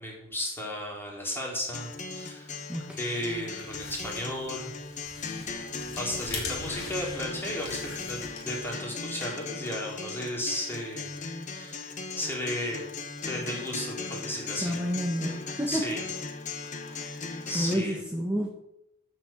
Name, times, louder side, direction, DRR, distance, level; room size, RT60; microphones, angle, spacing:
voice 1, 0.0-2.7 3.0-4.7 6.0-11.2 11.5-12.9 13.3-14.8 15.7-16.0 17.4-18.0, left 1 dB, 10° left, -3 dB, 3.9 m, -34 dB
Acoustic guitar, 1.7-17.7, left 4 dB, 35° left, 1.3 m, -38 dB
sound 1, 3.2-8.7, left 4 dB, 85° left, 3.5 m, -42 dB
voice 2, 14.6-15.8 16.9-17.2 17.5-18.5, equal, 5° right, -1 dB, 1.4 m, -30 dB
12.5 x 6.3 x 7.4 m, 0.85 s
head